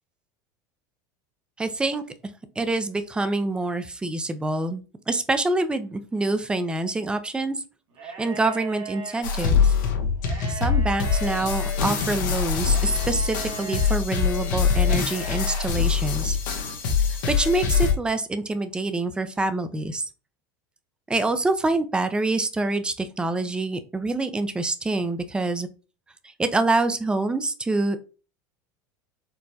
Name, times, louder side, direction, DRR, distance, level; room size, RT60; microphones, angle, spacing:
voice 1, 1.6-2.0 2.6-7.6 8.0-9.7 10.5-16.4 17.3-20.1 21.1-25.7 26.4-28.0, right 2 dB, 10° right, 10 dB, 0.4 m, -26 dB
sound 1, 7.9-9.2 10.2-11.8 12.7-14.0 14.8-15.7, right 5 dB, 60° right, 1.3 m, -39 dB
sound 2, 9.2-17.9, left 6 dB, 85° left, 0.9 m, -24 dB
4.4 x 2.1 x 2.7 m, 0.34 s
supercardioid pair, 115°, 10 cm